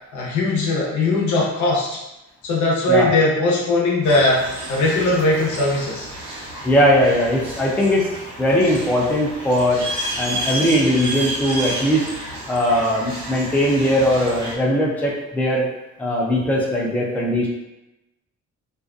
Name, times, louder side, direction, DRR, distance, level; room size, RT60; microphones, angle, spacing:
voice 1, 0.1-2.0 2.4-6.1, left 2 dB, 75° left, -4 dB, 0.8 m, -19 dB
sound 1, 4.0-14.6, right 1 dB, 70° right, 0.9 m, -31 dB
voice 2, 6.6-8.1 8.4-9.8 10.2-12.1 12.5-15.7 16.0-17.5, equal, 5° left, -3 dB, 0.5 m, -19 dB
2.5 x 2.2 x 2.4 m, 0.94 s
cardioid pair, 90°, 30 cm